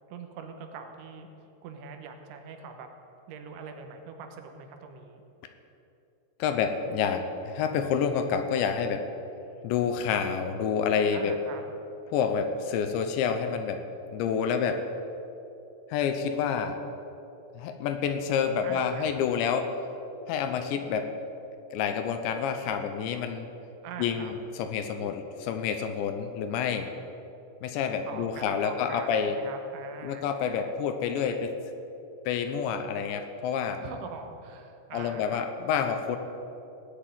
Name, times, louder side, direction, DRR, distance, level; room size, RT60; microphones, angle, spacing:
voice 1, 0.1-2.9 3.3-5.2 11.1-11.6 18.6-19.1 23.8-24.4 28.1-30.3 33.8-35.5, right 5 dB, 75° right, 5 dB, 3.3 m, -43 dB
voice 2, 6.4-9.0 9.6-11.3 12.1-13.8 14.1-14.8 15.9-16.8 17.6-19.7 20.3-21.1 21.7-23.5 24.0-26.9 27.6-29.4 30.0-31.5 32.3-33.8 34.9-36.2, left 7 dB, 80° left, 7 dB, 3.0 m, -28 dB
18.0 x 6.7 x 9.3 m, 2.8 s
omnidirectional pair, 5.4 m